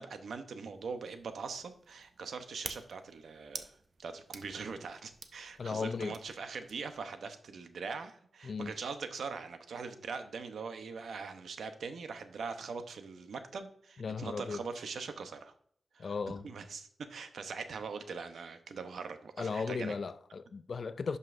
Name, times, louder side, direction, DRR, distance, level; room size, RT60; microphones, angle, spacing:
voice 1, 0.0-15.5 15.9-16.1 16.4-19.9, right 5 dB, 75° right, 0.8 m, -42 dB
sound 1, 0.7-7.0, right 4 dB, 45° right, 0.6 m, -50 dB
voice 2, 5.6-6.2 8.4-8.7 14.0-14.6 16.0-16.5 19.4-21.2, left 5 dB, 45° left, 0.3 m, -36 dB
11.0 x 5.4 x 2.6 m
wide cardioid pair, 150°, 0 cm